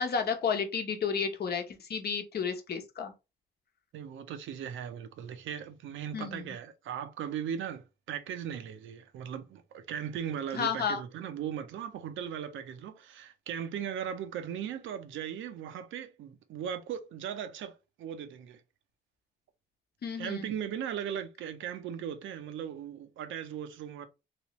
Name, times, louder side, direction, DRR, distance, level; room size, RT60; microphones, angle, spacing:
voice 1, 0.0-3.1 6.1-6.4 10.5-11.0 20.0-20.5, left 6 dB, 55° left, 0.9 m, -32 dB
voice 2, 3.9-18.6 20.1-24.1, right 9 dB, 75° right, 0.6 m, -38 dB
3.1 x 3.0 x 3.0 m
cardioid pair, 90°, 20 cm